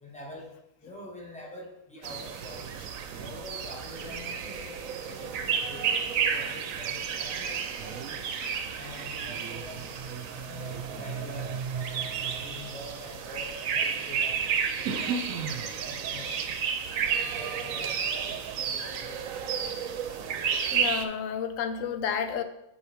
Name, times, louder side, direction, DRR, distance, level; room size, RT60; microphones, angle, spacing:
voice 1, 0.0-2.7 3.2-8.4 8.8-10.0 10.5-11.5 12.4-16.4 17.2-19.5, left 1 dB, 5° left, -2 dB, 1.3 m, -45 dB
sound 1, 2.0-21.0, right 7 dB, 80° right, 1.0 m, -32 dB
sound 2, 9.8-13.5, right 6 dB, 55° right, 1.1 m, -39 dB
voice 2, 20.7-22.4, left 7 dB, 75° left, 9 dB, 1.0 m, -31 dB
8.5 x 4.5 x 3.5 m, 0.86 s
omnidirectional pair, 1.4 m